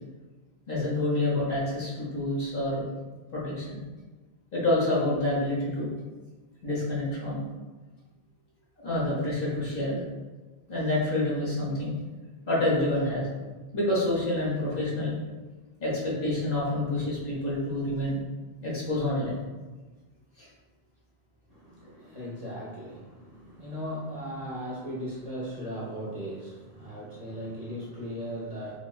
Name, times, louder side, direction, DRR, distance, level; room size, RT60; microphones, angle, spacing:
voice 1, 0.7-2.8 3.3-3.8 4.5-5.9 6.6-7.4 8.8-10.0 10.7-11.9 12.5-13.3 13.7-15.2 15.8-18.2 18.6-19.3 20.4-20.5, left 1 dB, 60° left, -6 dB, 1.3 m, -28 dB
voice 2, 21.5-28.8, equal, 40° right, -7 dB, 0.7 m, -37 dB
4.6 x 2.3 x 2.4 m, 1.2 s
omnidirectional pair, 1.1 m